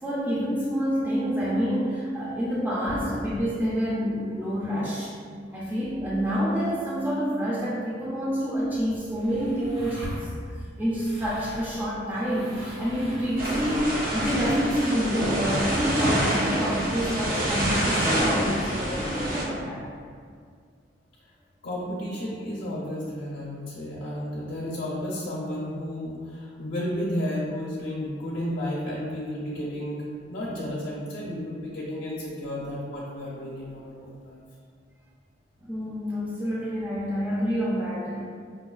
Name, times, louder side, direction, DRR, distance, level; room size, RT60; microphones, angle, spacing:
voice 1, 0.0-5.1 5.5-10.0 10.8-19.9 35.7-38.2, equal, 10° right, -8 dB, 0.4 m, -27 dB
sound 1, 8.6-14.9, equal, 70° right, 1.0 m, -41 dB
sound 2, 13.4-19.4, right 1 dB, 50° right, 0.6 m, -27 dB
voice 2, 21.6-30.0 30.3-34.4, left 1 dB, 55° left, -5 dB, 0.5 m, -32 dB
4.8 x 2.3 x 2.3 m, 2.1 s
head